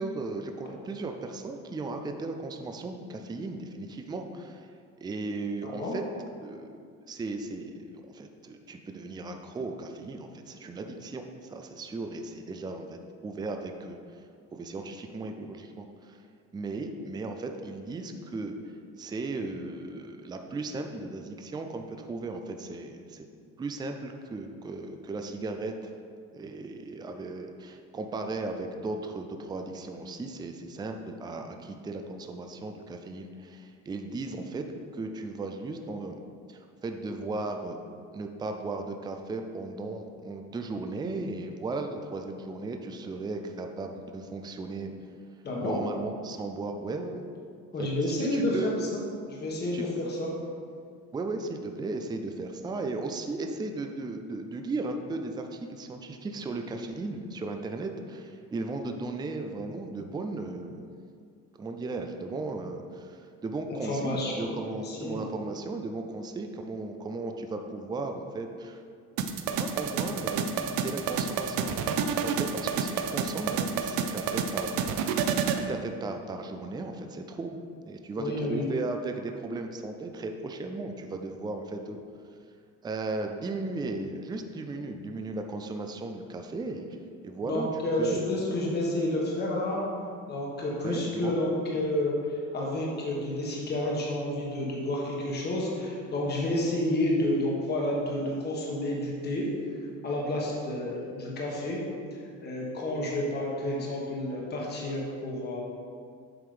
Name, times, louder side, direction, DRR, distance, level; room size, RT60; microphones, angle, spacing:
voice 1, 0.0-6.0 6.4-14.0 14.5-16.2 16.5-18.5 19.0-23.2 23.6-25.9 26.3-34.7 34.9-36.2 36.5-37.8 38.1-44.9 45.6-47.4 47.8-48.7 49.7-49.8 51.1-60.9 61.6-68.8 69.5-74.9 75.5-77.6 77.9-82.0 82.8-87.0 87.2-88.2 90.8-91.3, right 3 dB, 15° right, 5 dB, 0.4 m, -36 dB
voice 2, 5.6-5.9 45.4-45.8 47.7-49.0 49.3-50.3 63.8-64.6 64.8-65.4 78.2-78.6 87.5-89.8 90.3-99.5 100.0-101.8 102.4-105.6, left 1 dB, 35° left, -3 dB, 1.3 m, -30 dB
sound 1, 69.2-75.6, right 6 dB, 90° right, 0.6 m, -29 dB
7.8 x 3.6 x 5.0 m, 2.2 s
cardioid pair, 115°, 31 cm